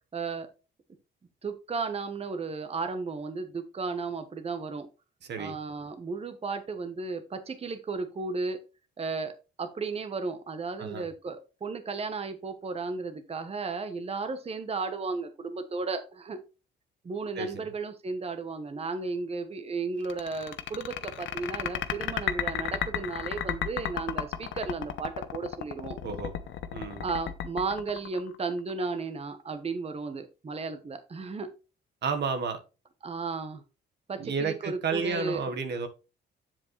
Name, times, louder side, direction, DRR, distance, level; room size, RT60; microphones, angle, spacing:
voice 1, 0.1-0.5 1.4-4.9 5.4-8.6 9.0-16.4 17.0-26.0 27.0-31.5 33.0-33.6 34.1-35.5, right 4 dB, 30° right, 1.0 m, -34 dB
voice 2, 5.2-5.6 10.8-11.1 17.3-17.6 26.0-26.3 26.7-27.1 32.0-32.6 34.2-35.9, right 5 dB, 60° right, 1.3 m, -31 dB
sound 1, 20.0-28.7, left 10 dB, 70° left, 0.9 m, -33 dB
7.5 x 7.4 x 3.1 m
cardioid pair, 90°, 20 cm